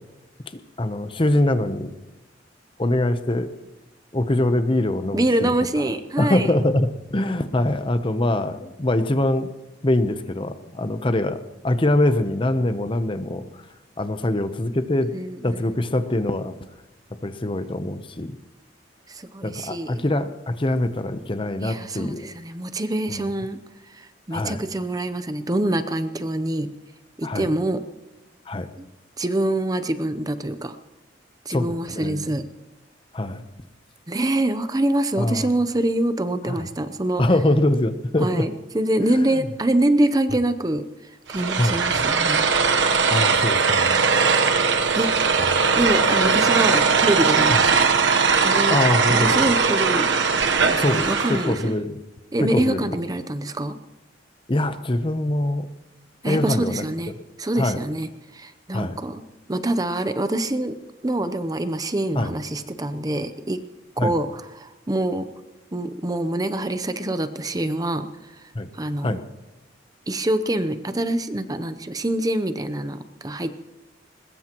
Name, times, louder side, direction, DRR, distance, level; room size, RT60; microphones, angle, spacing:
voice 1, 0.5-1.9 2.8-3.5 4.1-5.5 6.2-9.5 9.8-13.4 14.0-15.2 15.4-16.5 17.2-18.4 19.4-22.3 23.1-23.3 24.3-24.6 27.2-27.5 28.5-28.7 31.5-32.3 33.1-33.4 35.2-35.5 36.5-36.6 37.2-38.5 39.1-39.5 41.6-41.8 43.1-44.0 45.4-45.6 47.5-47.6 48.7-49.5 50.8-52.0 52.4-52.9 54.5-55.7 56.2-56.9 57.6-57.8 58.7-59.0 62.1-62.3 64.0-64.1 68.5-68.7 69.0-69.2, left 1 dB, 30° left, 10 dB, 0.8 m, -23 dB
voice 2, 5.1-6.5 15.1-15.8 19.1-20.0 21.6-23.6 23.9-26.7 27.2-27.8 28.8-28.9 29.2-30.8 31.4-32.4 34.1-37.2 38.2-42.5 44.9-45.4 45.8-47.8 48.4-48.8 49.1-50.1 50.6-51.7 52.3-53.8 56.2-57.1 57.4-59.2 59.5-60.8 61.0-63.6 64.0-65.3 65.7-69.2 70.1-73.6, right 1 dB, 20° right, 10 dB, 0.7 m, -25 dB
sound 1, 41.3-51.6, right 5 dB, 75° right, 1.1 m, -20 dB
21.5 x 20.5 x 3.0 m, 1.0 s
head